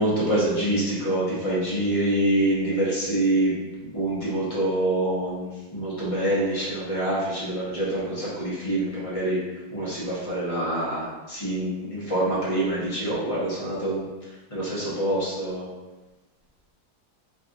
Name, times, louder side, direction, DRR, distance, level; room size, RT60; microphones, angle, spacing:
voice 1, 0.0-3.5 3.9-5.5 5.7-9.4 9.7-14.0 14.5-15.7, right 1 dB, 35° left, -8 dB, 0.5 m, -25 dB
4.6 x 2.5 x 2.9 m, 1.1 s
omnidirectional pair, 2.3 m